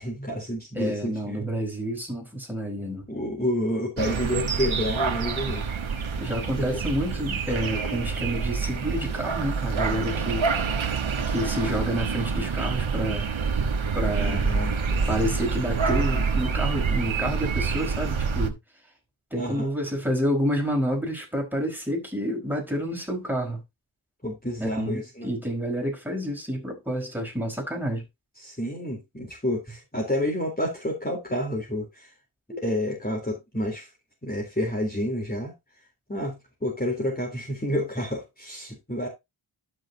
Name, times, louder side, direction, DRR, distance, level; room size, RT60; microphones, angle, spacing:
voice 1, 0.0-1.4 3.1-5.7 14.2-15.0 19.4-19.7 24.2-25.3 28.4-32.1 32.6-33.9 34.2-35.5 36.1-36.4 36.6-39.1, left 1 dB, 20° left, 3.7 m, -29 dB
voice 2, 0.7-3.0 6.2-10.5 11.3-13.3 13.9-14.5 15.1-18.6 19.3-23.6 24.6-28.0 32.5-32.6, equal, 5° right, 4.8 m, -29 dB
sound 1, 4.0-18.5, right 5 dB, 70° right, 1.3 m, -27 dB
12.0 x 6.4 x 2.8 m
wide cardioid pair, 70°, 48 cm